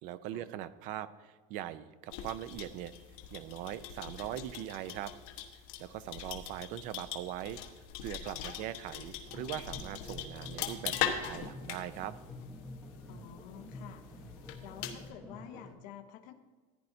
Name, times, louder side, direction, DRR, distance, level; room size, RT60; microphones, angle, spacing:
voice 1, 0.0-2.9 3.3-5.1 5.8-7.6 8.0-12.1, right 12 dB, 45° right, 15 dB, 0.5 m, -41 dB
sound 1, 2.1-15.1, left 9 dB, 70° left, 1.1 m, -41 dB
sound 2, 9.3-15.7, left 1 dB, ahead, 1.0 m, -49 dB
voice 2, 13.1-14.1 14.6-16.3, left 10 dB, 50° left, 5 dB, 0.8 m, -50 dB
15.0 x 9.8 x 2.6 m, 1.4 s
cardioid pair, 170°, 19 cm